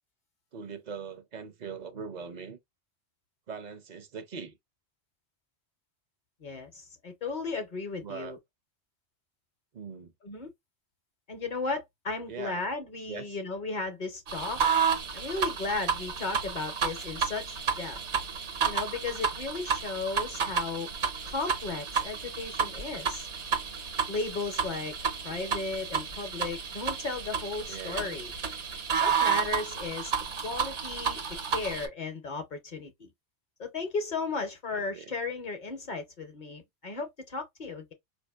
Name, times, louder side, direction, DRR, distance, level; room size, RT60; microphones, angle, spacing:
voice 1, 0.5-2.6 3.5-4.6 8.0-8.4 9.7-10.1 12.3-12.6 13.1-13.4 14.6-14.7 25.3-25.4 27.7-28.2 34.7-35.1, right 5 dB, 50° right, 0.6 m, -41 dB
voice 2, 6.4-8.4 10.2-10.5 11.3-14.6 15.1-18.0 18.6-20.9 21.2-23.3 24.1-25.0 25.2-28.3 29.0-30.1 30.4-31.2 31.5-33.1 33.6-37.9, left 3 dB, 50° left, 0.7 m, -35 dB
sound 1, 14.3-31.9, right 6 dB, 75° right, 1.2 m, -31 dB
4.7 x 2.6 x 2.2 m
omnidirectional pair, 1.1 m